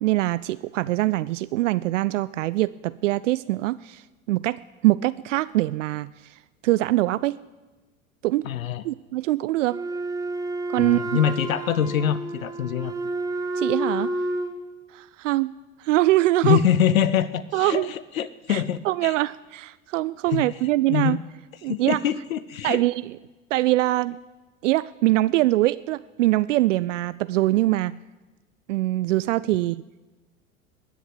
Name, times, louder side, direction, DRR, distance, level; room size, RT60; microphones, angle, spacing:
voice 1, 0.0-7.4 8.2-8.5 8.8-9.8 10.7-11.0 13.6-14.1 14.9-15.5 15.8-16.6 17.5-17.9 18.5-21.2 21.6-22.0 22.6-23.2 23.5-24.2 24.6-27.9 28.7-29.8, right 17 dB, 65° right, 17 dB, 0.5 m, -23 dB
voice 2, 8.4-8.8 10.8-12.9 16.4-19.1 20.3-20.5 20.9-21.2 21.6-22.8, left 9 dB, 75° left, 16 dB, 0.7 m, -24 dB
Wind instrument woodwind instrument, 9.7-14.6, right 1 dB, 10° right, 1.8 m, -30 dB
20.5 x 7.1 x 9.3 m, 1.2 s
figure-of-eight pair, 80°, 41 cm